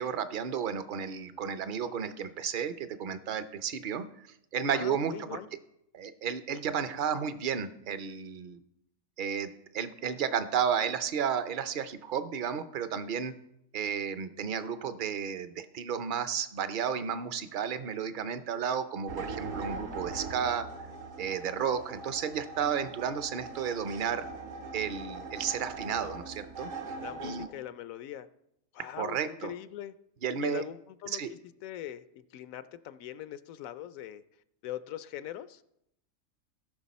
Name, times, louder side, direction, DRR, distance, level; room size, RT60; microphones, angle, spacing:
voice 1, 0.0-4.0 4.5-5.4 5.9-8.6 9.2-13.3 13.7-20.7 21.2-24.2 24.7-26.7 27.2-27.5 29.0-29.5 30.2-30.6 31.1-31.3, right 7 dB, 50° right, 11 dB, 0.7 m, -32 dB
voice 2, 4.7-5.5 26.0-26.2 27.0-28.3 28.7-29.9 30.4-31.2 31.6-34.2 34.6-35.6, left 11 dB, 85° left, 14 dB, 1.0 m, -41 dB
sound 1, 19.1-27.5, right 3 dB, 75° right, 1.5 m, -41 dB
18.0 x 6.0 x 4.2 m, 0.81 s
omnidirectional pair, 1.4 m